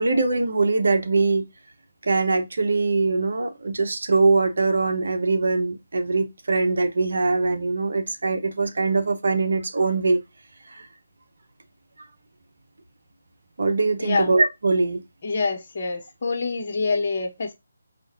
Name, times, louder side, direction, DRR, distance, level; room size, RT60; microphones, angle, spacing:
voice 1, 0.0-1.4 2.0-10.2 10.7-10.9 13.6-15.0, right 3 dB, 65° right, 0.9 m, -22 dB
voice 2, 14.0-14.3 15.2-17.5, left 4 dB, 45° left, 1.1 m, -26 dB
5.1 x 2.5 x 2.6 m
figure-of-eight pair, 155°, 0 cm